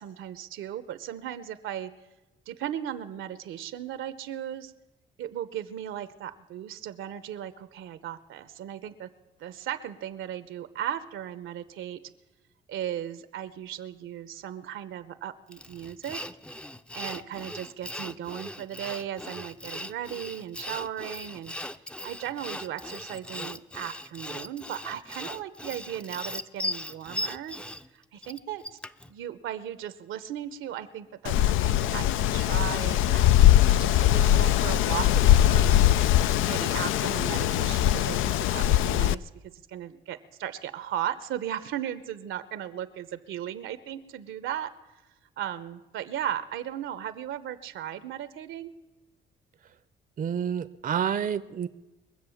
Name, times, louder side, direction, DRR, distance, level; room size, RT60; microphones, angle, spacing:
voice 1, 0.0-1.9 2.5-4.7 5.2-9.1 9.4-12.0 12.7-16.2 16.9-21.5 22.0-27.6 27.9-28.6 29.1-33.3 33.6-36.0 36.5-44.7 45.4-48.7, right 10 dB, 80° right, 13 dB, 0.9 m, -36 dB
Sawing, 15.5-29.1, left 1 dB, 5° left, 0.5 m, -38 dB
Wind, 31.2-39.1, left 12 dB, 85° left, 0.4 m, -21 dB
voice 2, 50.2-51.7, right 8 dB, 45° right, 13 dB, 0.6 m, -29 dB
22.0 x 7.6 x 7.1 m, 1.1 s
cardioid pair, 90°, 20 cm